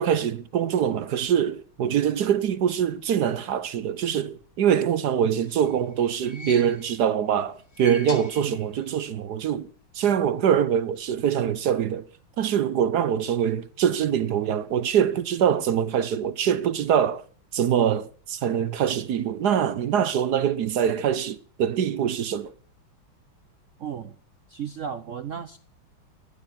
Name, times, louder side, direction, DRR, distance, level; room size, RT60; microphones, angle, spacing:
voice 1, 0.0-9.7 9.9-12.0 12.4-17.2 17.5-22.5, right 9 dB, 65° right, 1.1 m, -24 dB
sound 1, 5.2-7.1 7.6-9.0 9.3-9.4 10.5-10.6, left 4 dB, 35° left, 1.2 m, -43 dB
voice 2, 6.2-6.8 8.4-8.6 23.8-24.2 24.5-25.6, right 8 dB, 80° right, 0.6 m, -35 dB
14.0 x 11.5 x 5.9 m
omnidirectional pair, 2.4 m